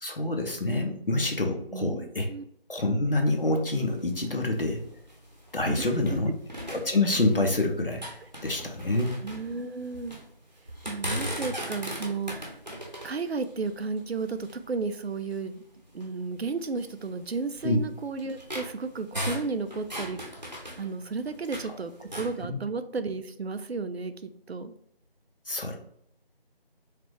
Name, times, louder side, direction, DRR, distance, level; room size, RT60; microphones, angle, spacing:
voice 1, 0.0-2.3 2.7-4.8 5.5-6.3 6.7-8.0 8.4-9.1 17.6-17.8 22.4-22.6 25.5-25.7, left 2 dB, 65° left, 3 dB, 0.7 m, -27 dB
voice 2, 1.7-2.4 5.7-6.0 9.2-10.2 10.8-12.5 13.0-15.6 15.9-20.2 20.8-24.7, right 4 dB, 85° right, 10 dB, 0.5 m, -33 dB
sound 1, 3.2-6.2 6.5-7.6 7.9-10.2 10.7-14.7 15.3-15.4 15.9-16.0 16.8-21.7 22.0-22.4, equal, 45° right, 0.8 m, -38 dB
3.3 x 3.2 x 3.1 m, 0.70 s
figure-of-eight pair, 175°, 30 cm